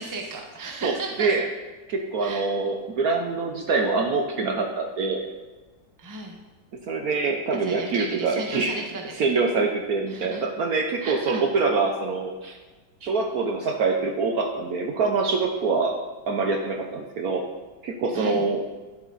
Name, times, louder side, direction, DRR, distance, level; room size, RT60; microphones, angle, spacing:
voice 1, 0.0-1.3 2.2-2.5 6.0-6.4 7.5-9.2 10.1-10.4 11.0-11.4 18.1-18.5, right 3 dB, 15° right, 1 dB, 0.9 m, -35 dB
voice 2, 0.8-1.5 1.9-5.2 6.9-8.8 9.2-12.6 13.0-15.9 16.3-17.5 17.8-18.6, right 4 dB, 60° right, 3 dB, 1.1 m, -25 dB
11.0 x 7.5 x 4.0 m, 1.2 s
omnidirectional pair, 2.0 m